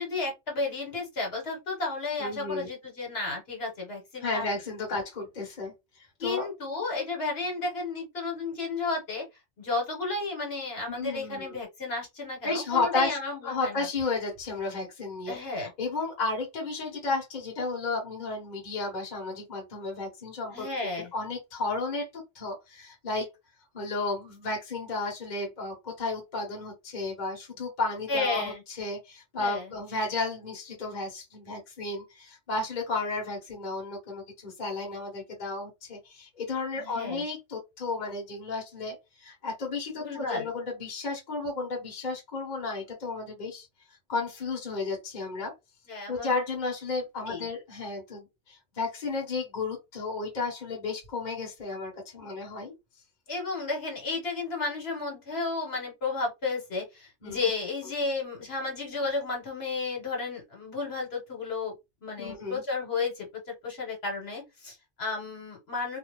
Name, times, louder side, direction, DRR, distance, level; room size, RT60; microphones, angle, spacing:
voice 1, 0.0-4.5 6.2-9.2 9.6-13.9 15.3-15.7 20.5-21.1 28.1-28.6 29.4-29.7 36.7-37.2 40.0-40.5 45.9-46.3 47.3-47.5 53.3-61.8 62.0-66.0, left 3 dB, 60° left, 1.4 m, -33 dB
voice 2, 2.2-2.7 4.2-5.7 6.2-6.5 10.9-11.5 12.4-13.2 13.4-20.7 21.0-23.3 23.7-43.7 44.1-45.5 46.1-52.7 57.2-57.4 62.2-62.6, left 3 dB, 40° left, 1.1 m, -33 dB
2.5 x 2.3 x 3.0 m
omnidirectional pair, 1.2 m